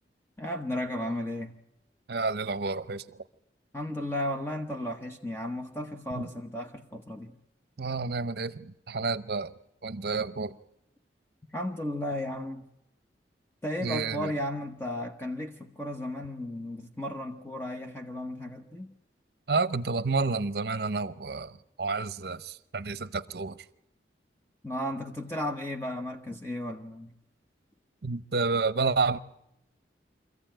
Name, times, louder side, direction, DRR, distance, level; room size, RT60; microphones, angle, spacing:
voice 1, 0.4-1.5 3.7-7.3 11.5-12.7 13.6-18.9 24.6-27.1, left 1 dB, 15° left, 0.9 m, -34 dB
voice 2, 2.1-3.0 6.1-6.3 7.8-9.5 9.8-10.6 13.8-14.3 19.5-23.6 28.0-29.2, right 4 dB, 60° right, 0.7 m, -30 dB
24.0 x 15.0 x 9.0 m
head